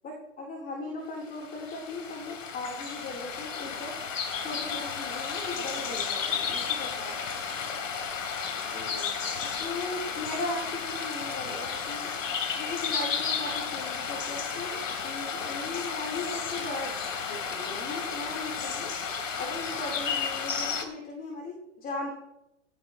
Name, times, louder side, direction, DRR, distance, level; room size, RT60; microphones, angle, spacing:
voice 1, 0.0-7.3 8.3-9.1 9.5-12.1 12.6-16.9 17.2-18.9 19.4-22.1, left 2 dB, 20° left, -1 dB, 4.3 m, -38 dB
sound 1, 1.3-20.8, left 6 dB, 80° left, 3.4 m, -33 dB
18.5 x 17.5 x 3.2 m, 0.88 s
hypercardioid pair, 135°, 38 cm